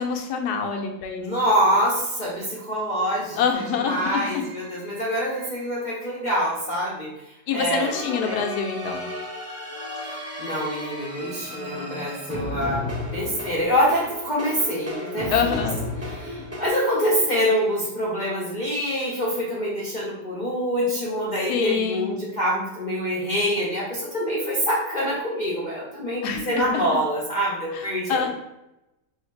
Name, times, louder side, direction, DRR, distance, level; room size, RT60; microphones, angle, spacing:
voice 1, 0.0-1.2 3.4-4.4 7.5-9.0 11.5-12.1 15.3-15.8 21.5-22.1 26.2-26.9 27.7-28.3, left 6 dB, 80° left, 4 dB, 1.1 m, -26 dB
voice 2, 1.2-7.1 7.5-8.4 10.0-15.6 16.0-28.3, equal, 45° left, -6 dB, 0.6 m, -25 dB
sound 1, 3.5-5.8 7.5-16.7, left 1 dB, 20° right, 0.4 m, -34 dB
3.2 x 2.8 x 4.4 m, 0.92 s
omnidirectional pair, 1.7 m